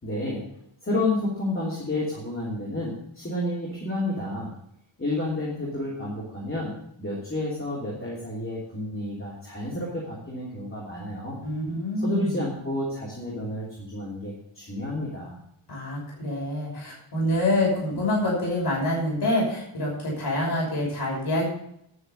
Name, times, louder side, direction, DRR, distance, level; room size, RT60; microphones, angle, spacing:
voice 1, 0.0-0.4 0.8-4.6 5.0-11.4 11.9-15.4, left 1 dB, 25° left, -6 dB, 3.2 m, -30 dB
voice 2, 11.4-12.4 15.7-21.5, left 1 dB, 55° left, -4 dB, 5.9 m, -26 dB
11.0 x 6.6 x 8.0 m, 0.73 s
wide cardioid pair, 120°, 48 cm